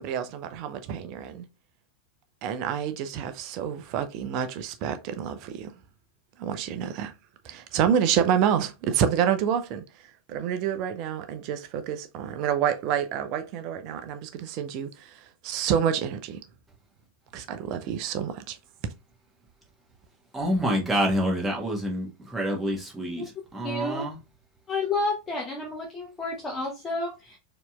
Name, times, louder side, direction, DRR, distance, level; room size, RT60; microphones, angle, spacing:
voice 1, 0.0-1.4 2.4-5.7 6.4-7.1 7.4-9.8 10.3-14.9 15.4-16.4 17.3-18.6, right 8 dB, 40° right, 0.6 m, -28 dB
voice 2, 20.3-23.2 23.5-24.2, equal, 10° right, 1.4 m, -27 dB
voice 3, 23.6-24.0 24.7-27.4, left 2 dB, 15° left, 0.9 m, -30 dB
4.2 x 2.9 x 2.4 m
figure-of-eight pair, 90°, 0 cm